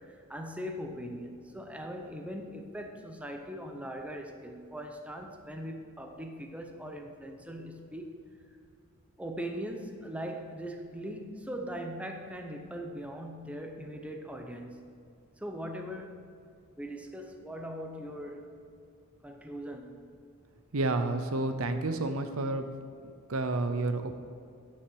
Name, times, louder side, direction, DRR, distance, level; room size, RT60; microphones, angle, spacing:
voice 1, 0.0-8.1 9.2-14.9 15.4-16.3 16.8-18.5 19.2-20.0, equal, 5° right, 4 dB, 0.7 m, -40 dB
voice 2, 20.7-22.7 23.3-24.2, right 2 dB, 70° right, 8 dB, 0.7 m, -30 dB
9.7 x 6.3 x 6.2 m, 2.4 s
head